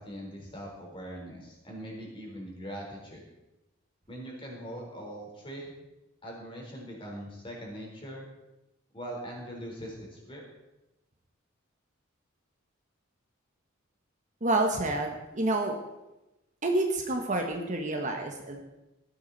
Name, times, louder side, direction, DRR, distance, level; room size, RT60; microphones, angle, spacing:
voice 1, 0.0-3.2 4.1-5.7 6.2-8.2 8.9-10.4, equal, 25° left, -1 dB, 4.2 m, -41 dB
voice 2, 14.4-15.8 16.6-18.6, right 2 dB, 35° right, 3 dB, 1.4 m, -28 dB
17.0 x 11.0 x 4.2 m, 0.96 s
head